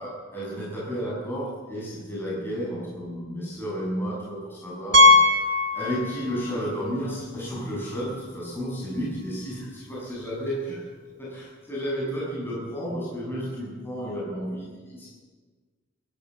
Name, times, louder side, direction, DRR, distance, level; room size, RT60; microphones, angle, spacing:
voice 1, 0.0-5.5 5.7-10.9 11.2-15.1, equal, 10° left, -6 dB, 7.0 m, -32 dB
Piano, 4.9-6.5 6.8-7.0 7.5-7.6 7.9-8.0 10.1-10.2, left 2 dB, 65° right, 1.8 m, -19 dB
27.5 x 13.5 x 7.6 m, 1.5 s
head